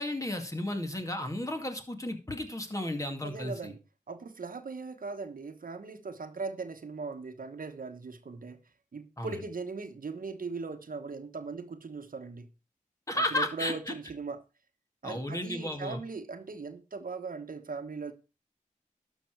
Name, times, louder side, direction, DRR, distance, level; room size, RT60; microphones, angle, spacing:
voice 1, 0.0-3.7 9.2-9.4 13.1-13.9 15.0-16.0, left 1 dB, 25° left, 2.2 m, -33 dB
voice 2, 3.2-3.8 4.1-8.6 8.9-12.5 13.1-14.4 15.0-18.1, right 4 dB, 85° right, 1.3 m, -39 dB
12.0 x 6.1 x 4.7 m
wide cardioid pair, 70°, 14 cm